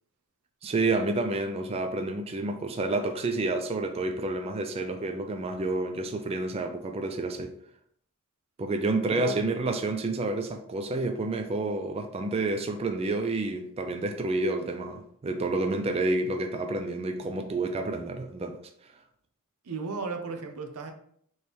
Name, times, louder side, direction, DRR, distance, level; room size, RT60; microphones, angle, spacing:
voice 1, 0.6-7.5 8.6-18.6, right 2 dB, 25° right, 0.3 m, -29 dB
voice 2, 9.0-9.4 19.6-20.9, right 4 dB, 90° right, 0.7 m, -35 dB
4.2 x 3.1 x 3.4 m
head